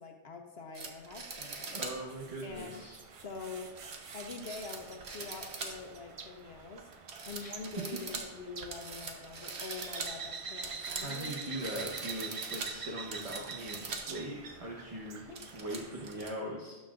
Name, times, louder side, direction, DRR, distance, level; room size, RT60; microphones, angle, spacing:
voice 1, 0.0-1.8 2.4-2.8 3.2-3.7 4.1-6.8 7.2-11.3 15.3-15.4, left 4 dB, 70° left, 3 dB, 1.1 m, -45 dB
sound 1, 0.7-2.0 2.5-2.6 3.8-6.0 6.4-6.8 7.1-14.1 14.5-14.6 15.1-16.3, right 4 dB, 75° right, 1.2 m, -43 dB
sound 2, 1.4-16.3, right 5 dB, 50° right, 0.4 m, -46 dB
voice 2, 1.7-3.0 7.4-7.5 7.9-8.0 10.8-15.2 15.5-16.8, right 1 dB, 35° right, -2 dB, 1.1 m, -40 dB
17.5 x 6.3 x 2.5 m, 1.2 s
omnidirectional pair, 1.1 m